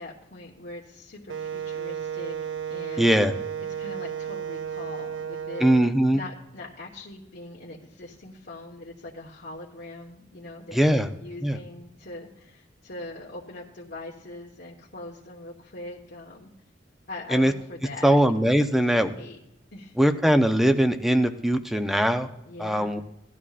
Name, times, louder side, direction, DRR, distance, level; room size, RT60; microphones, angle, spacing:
voice 1, 0.0-3.1 3.8-5.7 6.1-16.5 17.1-18.2 18.6-19.4 19.7-19.9 22.5-23.0, left 2 dB, 65° left, -3 dB, 1.3 m, -42 dB
Wind instrument woodwind instrument, 1.3-5.9, right 8 dB, 80° right, 0.4 m, -33 dB
voice 2, 3.0-3.3 5.6-6.2 10.7-11.1 11.4-11.6 17.3-17.5 18.0-19.1 20.0-22.3 22.6-23.0, right 1 dB, ahead, 8 dB, 0.6 m, -21 dB
17.5 x 12.0 x 2.5 m, 0.87 s
head